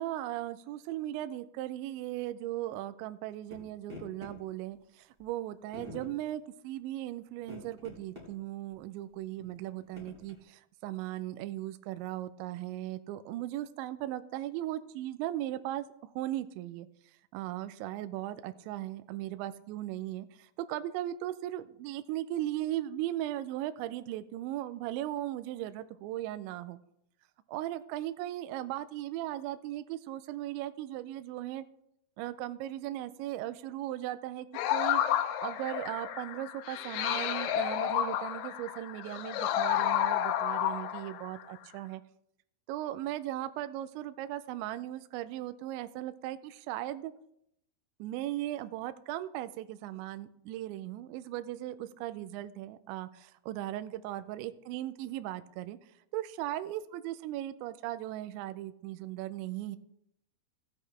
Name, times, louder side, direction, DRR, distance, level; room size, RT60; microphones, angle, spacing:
voice 1, 0.0-15.9 16.2-16.9 17.3-26.8 27.5-31.6 32.2-35.0 35.4-42.0 42.7-47.1 48.0-55.8 56.1-59.8, right 14 dB, 85° right, 11 dB, 2.6 m, -37 dB
sound 1, 3.5-3.6 3.9-4.3 5.2-5.3 5.7-6.1 7.4-8.3 8.7-8.8 9.4-10.4, left 1 dB, 45° right, 0.6 m, -46 dB
sound 2, 34.5-41.4, left 11 dB, 80° left, 2.7 m, -31 dB
15.5 x 8.3 x 3.3 m, 0.76 s
omnidirectional pair, 5.6 m